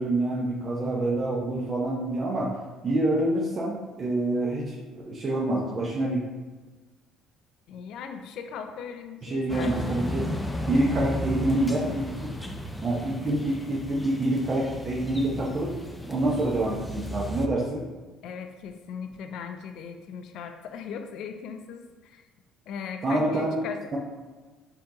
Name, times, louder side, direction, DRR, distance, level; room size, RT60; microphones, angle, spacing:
voice 1, 0.0-2.5 2.8-6.2 9.2-10.3 10.7-12.1 12.8-15.8 16.1-17.8 23.0-23.6, right 1 dB, 40° right, -4 dB, 0.7 m, -27 dB
voice 2, 7.7-9.8 18.2-22.2 22.7-24.0, left 6 dB, 65° left, 6 dB, 0.3 m, -38 dB
sound 1, 9.5-17.5, equal, 10° left, 0.5 m, -34 dB
4.3 x 2.8 x 3.8 m, 1.3 s
hypercardioid pair, 65°, 0 cm